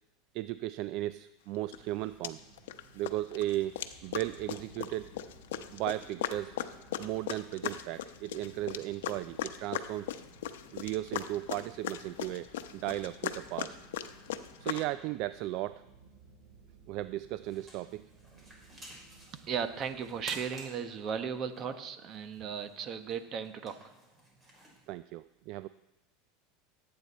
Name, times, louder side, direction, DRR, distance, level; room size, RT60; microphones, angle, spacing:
voice 1, 0.3-2.4 2.9-3.7 4.0-5.1 5.7-6.6 7.0-10.2 10.7-12.5 12.7-13.8 14.6-15.8 16.9-18.0 24.9-25.7, right 15 dB, 55° right, 15 dB, 0.3 m, -36 dB
sound 1, 1.6-20.5, right 4 dB, 80° right, 3.3 m, -59 dB
sound 2, 1.7-1.8 2.2-2.8 3.1-14.9, left 11 dB, 85° left, 0.7 m, -39 dB
sound 3, 17.3-24.9, right 1 dB, 20° right, 4.1 m, -53 dB
voice 2, 19.3-23.8, right 7 dB, 40° right, 9 dB, 1.1 m, -36 dB
17.5 x 8.6 x 4.2 m, 0.95 s
supercardioid pair, 120°, 0 cm